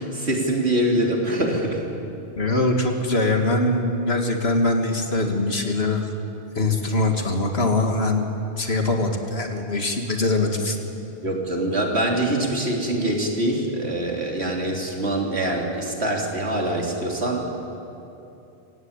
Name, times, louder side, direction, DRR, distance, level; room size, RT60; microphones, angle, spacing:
voice 1, 0.0-1.9 11.2-17.7, right 1 dB, 60° right, 0 dB, 3.6 m, -24 dB
voice 2, 2.4-6.1 6.6-8.3 8.6-10.8, left 2 dB, 60° left, 4 dB, 2.2 m, -22 dB
26.5 x 16.5 x 8.9 m, 2.8 s
omnidirectional pair, 1.2 m